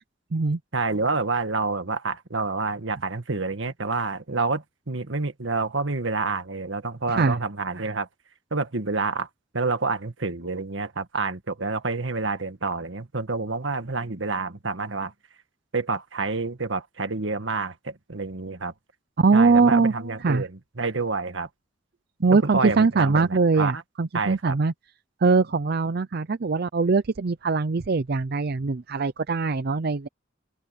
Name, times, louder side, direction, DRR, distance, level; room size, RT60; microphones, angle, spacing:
voice 1, 0.7-8.1 8.5-9.3 9.5-15.1 15.7-18.7 19.3-21.5 22.3-23.8 24.1-24.6, right 3 dB, 75° right, 1.7 m, -28 dB
voice 2, 19.2-19.9 20.2-20.4 22.2-23.7 24.0-24.7 25.2-30.1, right 4 dB, 55° right, 0.6 m, -21 dB
open air
head